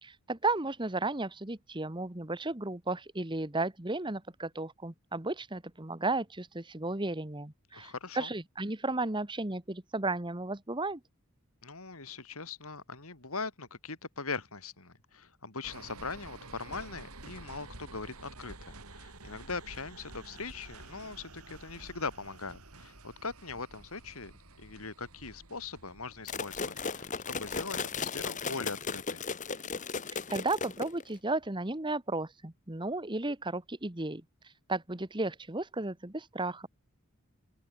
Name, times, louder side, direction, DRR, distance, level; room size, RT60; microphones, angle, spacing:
voice 1, 0.0-11.0 30.3-34.2 34.7-36.7, right 2 dB, 20° right, 1.4 m, -34 dB
voice 2, 7.7-8.3 11.6-29.2, left 4 dB, 75° left, 3.7 m, -41 dB
sound 1, 15.6-28.2 28.6-28.7, right 2 dB, 85° right, 6.0 m, -51 dB
sound 2, 26.3-31.2, left 5 dB, 35° left, 1.6 m, -36 dB
open air
head